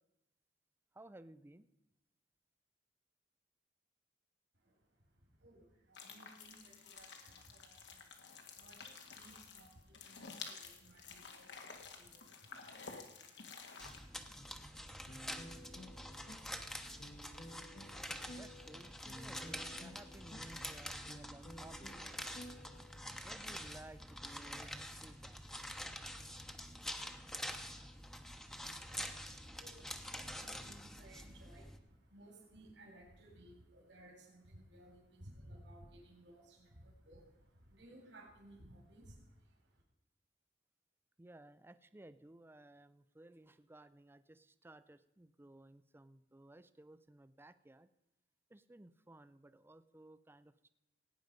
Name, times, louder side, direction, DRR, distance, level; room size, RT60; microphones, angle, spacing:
voice 1, 0.9-1.7 18.3-22.1 23.2-25.5 41.2-47.9 48.5-50.7, right 1 dB, 15° right, 12 dB, 0.5 m, -58 dB
voice 2, 4.5-12.8 28.4-39.8, right 1 dB, 80° right, -1 dB, 3.5 m, -60 dB
sound 1, 5.9-14.0, left 5 dB, 80° left, 1.8 m, -52 dB
sound 2, 13.8-31.8, equal, 5° left, 0.9 m, -47 dB
sound 3, 15.1-23.2, equal, 45° left, 1.1 m, -54 dB
17.5 x 9.2 x 5.2 m, 0.90 s
head